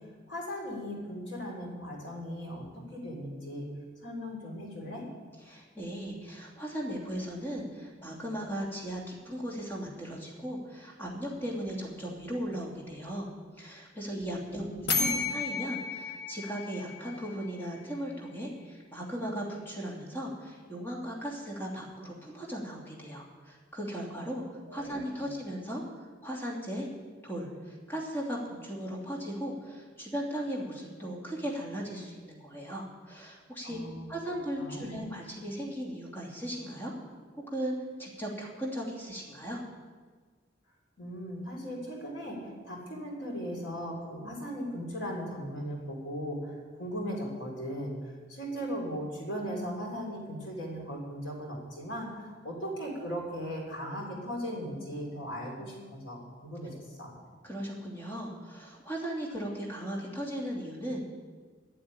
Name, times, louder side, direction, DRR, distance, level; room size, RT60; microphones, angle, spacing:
voice 1, 0.3-2.7 2.9-3.7 4.0-5.0 14.5-15.2 24.7-25.3 33.6-35.0 41.0-57.1, equal, 85° left, -2 dB, 4.2 m, -38 dB
voice 2, 5.5-13.3 13.6-14.7 14.9-24.4 24.7-25.8 26.2-26.9 27.2-33.8 34.1-36.9 37.4-39.6 57.4-61.1, equal, 10° left, -3 dB, 2.7 m, -37 dB
sound 1, 14.9-17.6, left 4 dB, 65° left, 1.4 m, -33 dB
12.0 x 8.0 x 9.8 m, 1.5 s
head